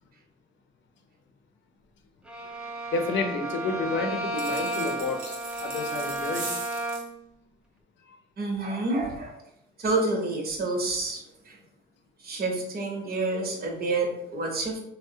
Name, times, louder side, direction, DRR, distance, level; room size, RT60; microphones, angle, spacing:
Bowed string instrument, 2.2-7.2, right 2 dB, 5° right, 0.5 m, -33 dB
voice 1, 2.9-6.5 8.0-8.2, left 3 dB, 70° left, 5 dB, 0.6 m, -30 dB
sound 1, 4.3-7.1, right 4 dB, 80° right, 0.7 m, -39 dB
voice 2, 8.4-9.4 9.8-11.6 12.2-14.8, right 2 dB, 50° right, 0 dB, 0.8 m, -28 dB
3.3 x 2.1 x 2.6 m, 0.82 s
cardioid pair, 90°, 20 cm